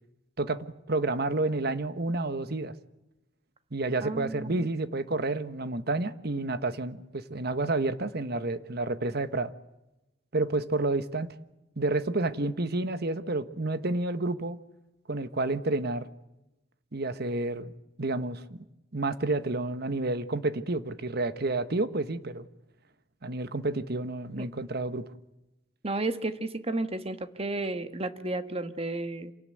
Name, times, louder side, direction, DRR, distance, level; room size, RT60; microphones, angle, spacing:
voice 1, 0.4-2.7 3.7-9.5 10.3-11.3 11.8-14.6 15.1-16.1 16.9-17.7 18.0-18.6 18.9-22.5 23.2-25.0, right 2 dB, 60° right, 13 dB, 1.3 m, -30 dB
voice 2, 4.0-4.7 24.3-24.5 25.8-29.3, right 2 dB, 30° right, 10 dB, 1.5 m, -32 dB
27.0 x 18.0 x 9.1 m, 0.97 s
head